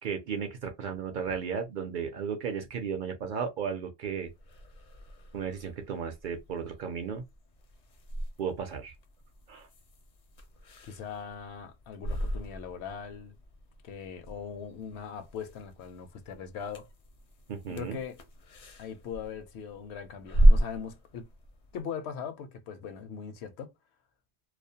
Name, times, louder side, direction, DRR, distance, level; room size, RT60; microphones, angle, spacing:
voice 1, 0.0-4.3 5.3-7.2 8.4-8.9 9.5-9.7 17.5-18.0, right 6 dB, 60° right, 0.6 m, -34 dB
sound 1, 4.2-21.8, right 1 dB, 50° left, 0.5 m, -32 dB
voice 2, 10.9-13.4 13.8-16.9 17.7-18.2 18.8-21.3 21.7-23.7, left 7 dB, 85° left, 0.9 m, -40 dB
2.4 x 2.0 x 2.7 m
omnidirectional pair, 1.1 m